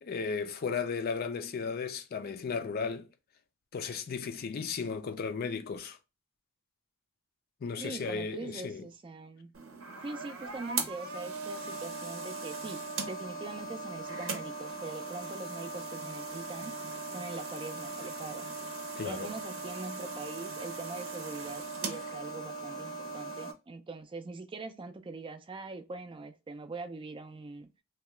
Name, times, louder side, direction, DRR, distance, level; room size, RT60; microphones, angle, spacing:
voice 1, 0.0-3.1 3.7-6.0 7.6-8.8 19.0-19.3, left 5 dB, 50° left, 0.4 m, -35 dB
voice 2, 7.8-9.5 10.0-16.7 17.1-18.5 19.0-27.7, right 3 dB, 25° right, 0.3 m, -42 dB
sound 1, 9.5-23.5, right 3 dB, 80° right, 0.7 m, -39 dB
2.8 x 2.2 x 3.1 m
head